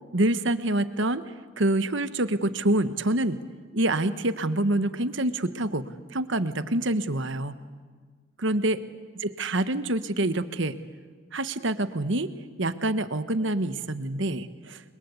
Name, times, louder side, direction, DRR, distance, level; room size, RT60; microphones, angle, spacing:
voice 1, 0.1-1.2 1.6-3.4 3.7-7.6 8.4-8.8 9.2-10.7 11.3-12.3 12.6-14.8, right 1 dB, 60° right, 11 dB, 1.3 m, -26 dB
29.0 x 23.0 x 8.3 m, 1.5 s
head